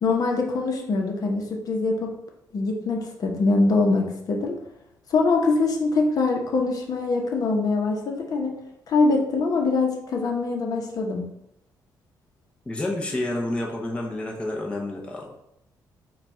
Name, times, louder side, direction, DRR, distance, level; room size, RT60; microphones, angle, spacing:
voice 1, 0.0-2.1 2.5-4.5 5.1-8.6 8.9-11.2, left 3 dB, 55° left, 1 dB, 0.9 m, -23 dB
voice 2, 12.7-15.3, left 1 dB, 15° left, -1 dB, 0.7 m, -29 dB
4.9 x 2.4 x 4.2 m, 0.79 s
cardioid pair, 120°, 8 cm